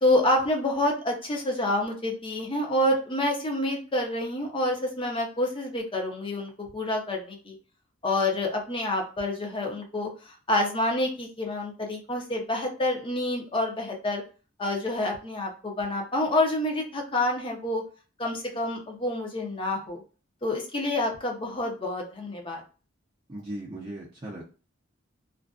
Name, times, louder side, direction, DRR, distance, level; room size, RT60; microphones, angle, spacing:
voice 1, 0.0-7.6 8.0-14.2 14.6-17.8 18.2-20.0 20.4-22.6, left 1 dB, 25° left, 1 dB, 0.6 m, -28 dB
voice 2, 23.3-24.4, right 1 dB, 25° right, -6 dB, 0.5 m, -37 dB
2.5 x 2.2 x 2.3 m, 0.35 s
head